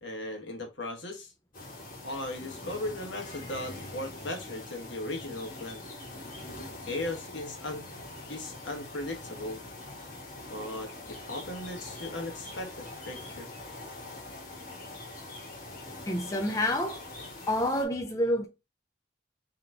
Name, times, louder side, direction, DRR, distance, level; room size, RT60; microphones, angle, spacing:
voice 1, 0.0-1.3 2.0-5.8 6.8-7.8 8.3-9.6 10.5-13.5, left 1 dB, 75° left, 1.3 m, -37 dB
sound 1, 1.5-17.8, left 2 dB, 45° left, 1.4 m, -43 dB
voice 2, 16.1-17.0 17.5-18.5, left 1 dB, 15° left, 0.4 m, -28 dB
3.9 x 3.0 x 3.3 m
head